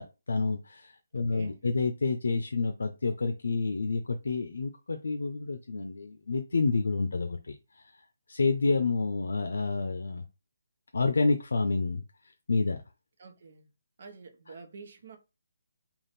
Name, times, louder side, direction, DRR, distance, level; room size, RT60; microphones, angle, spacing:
voice 1, 0.0-7.8 8.3-10.2 10.9-12.8, left 3 dB, 85° left, 0.5 m, -29 dB
voice 2, 1.1-1.6 13.2-13.7 14.0-15.2, right 4 dB, 45° right, 0.8 m, -48 dB
3.5 x 2.5 x 4.0 m
hypercardioid pair, 175°, 0 cm